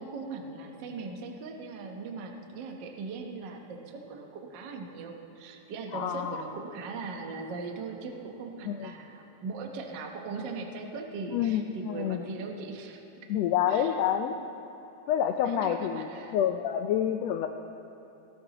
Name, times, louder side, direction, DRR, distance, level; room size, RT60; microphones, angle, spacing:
voice 1, 0.0-13.0 13.7-13.9 14.2-14.3 15.4-16.4, right 4 dB, 65° right, 2 dB, 1.1 m, -39 dB
voice 2, 5.9-6.4 8.6-8.9 11.3-12.2 13.3-14.4 15.1-17.5, left 9 dB, 85° left, 6 dB, 1.5 m, -28 dB
18.5 x 17.0 x 3.0 m, 2.9 s
omnidirectional pair, 3.5 m